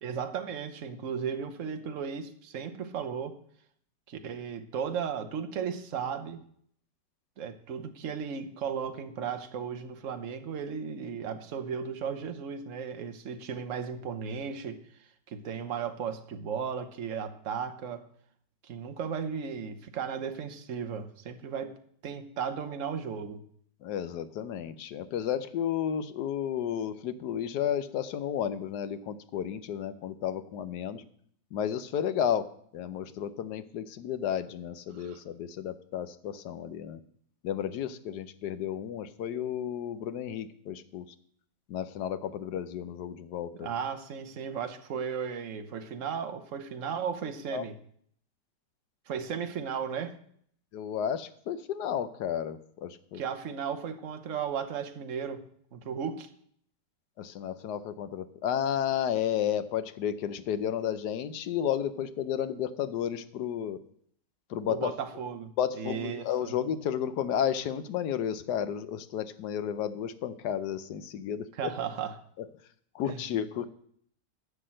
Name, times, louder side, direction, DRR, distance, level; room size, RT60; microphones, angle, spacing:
voice 1, 0.0-3.4 4.1-6.4 7.4-14.8 15.3-18.1 18.6-21.8 22.0-23.4 34.9-35.2 43.5-47.8 49.1-50.1 53.1-55.5 55.7-56.3 64.7-66.5 71.5-72.2 73.1-73.2, right 7 dB, 55° right, 8 dB, 1.2 m, -35 dB
voice 2, 23.8-31.0 31.5-32.5 32.7-37.0 37.4-41.1 41.7-43.7 47.5-47.6 50.7-53.2 57.2-63.8 64.5-64.9 65.6-71.5 72.9-73.7, left 9 dB, 70° left, 12 dB, 1.3 m, -32 dB
11.0 x 5.9 x 7.6 m, 0.64 s
omnidirectional pair, 1.9 m